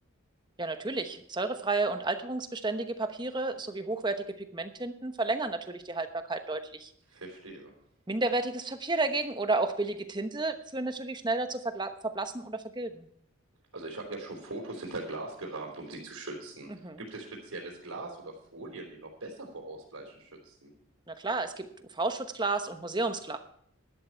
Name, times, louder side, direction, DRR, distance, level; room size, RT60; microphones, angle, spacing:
voice 1, 0.6-4.2 4.5-6.9 8.1-13.1 16.8-17.0 21.1-21.7 21.9-23.4, right 3 dB, 20° right, 8 dB, 1.0 m, -31 dB
voice 2, 7.1-7.7 13.7-16.7 17.0-20.7, right 2 dB, 85° right, -3 dB, 3.7 m, -41 dB
12.0 x 12.0 x 4.6 m, 0.70 s
head